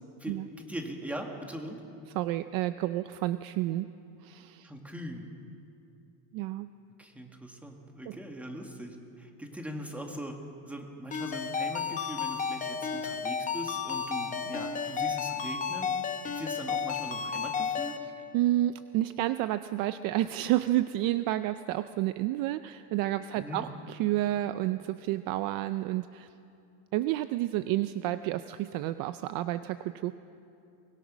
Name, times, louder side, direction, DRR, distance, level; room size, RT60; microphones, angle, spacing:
voice 1, 0.2-1.8 4.6-5.3 7.0-15.9 16.2-18.0 23.4-23.7, equal, 5° right, 2 dB, 1.7 m, -41 dB
voice 2, 2.1-3.9 4.2-4.7 6.3-6.7 8.1-8.2 18.3-26.3 26.9-30.1, right 14 dB, 50° right, 12 dB, 0.5 m, -30 dB
Ringtone, 11.1-18.0, left 6 dB, 15° left, 0.9 m, -32 dB
23.0 x 21.5 x 6.1 m, 2.7 s
cardioid pair, 170°, 46 cm